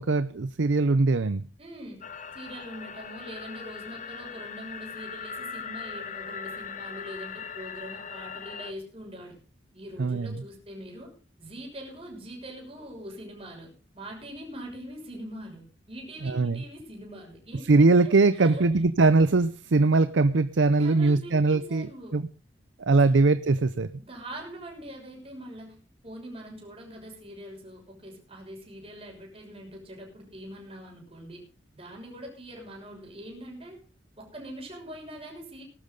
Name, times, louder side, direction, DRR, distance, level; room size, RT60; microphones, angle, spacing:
voice 1, 0.0-1.4 10.0-10.3 16.3-16.6 17.7-22.3 22.8-23.9, right 3 dB, 85° right, 0.6 m, -21 dB
voice 2, 1.6-2.0 2.3-9.4 9.7-11.1 11.4-18.6 20.8-22.2 23.0-23.2 24.0-25.8 26.0-31.4 31.7-33.8 34.2-35.6, right 1 dB, 30° right, 6.4 m, -43 dB
sound 1, 2.0-8.7, left 6 dB, 40° left, 1.0 m, -39 dB
19.5 x 12.0 x 3.9 m
head